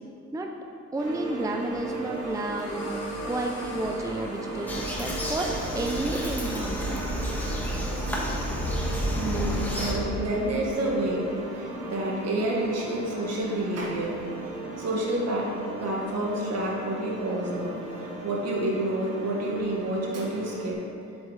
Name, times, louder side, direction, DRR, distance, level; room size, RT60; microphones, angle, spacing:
voice 1, 0.9-7.0, right 2 dB, 10° right, 3 dB, 0.5 m, -31 dB
sound 1, 1.0-20.7, right 2 dB, 75° right, 1.6 m, -37 dB
sound 2, 1.6-6.9, left 3 dB, 75° left, 1.5 m, -43 dB
Bird vocalization bird call bird song, 4.7-9.9, equal, 5° left, 1.5 m, -30 dB
voice 2, 9.1-11.3 11.5-14.2 14.8-15.5 15.8-17.8 18.2-20.8, right 1 dB, 60° right, -3 dB, 1.9 m, -29 dB
7.9 x 7.4 x 3.2 m, 2.6 s
cardioid pair, 90°, 30 cm